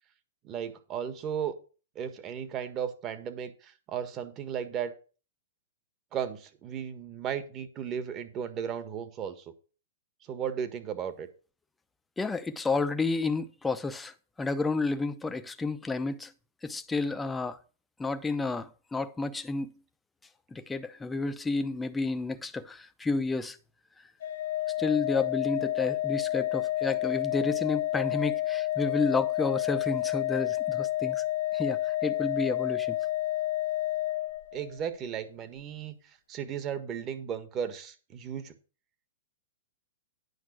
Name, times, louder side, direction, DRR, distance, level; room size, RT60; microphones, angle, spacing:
voice 1, 0.4-1.6 1.9-4.9 6.1-9.3 10.3-11.3 34.5-36.0 36.3-38.6, right 8 dB, 30° right, 1.5 m, -35 dB
voice 2, 12.2-16.3 16.6-17.6 18.0-19.7 20.5-23.6 24.8-31.2 31.5-33.0, left 3 dB, 10° left, 0.7 m, -31 dB
Organ, 24.2-34.9, left 15 dB, 70° left, 0.6 m, -30 dB
9.6 x 5.7 x 6.4 m
hypercardioid pair, 125°, 0 cm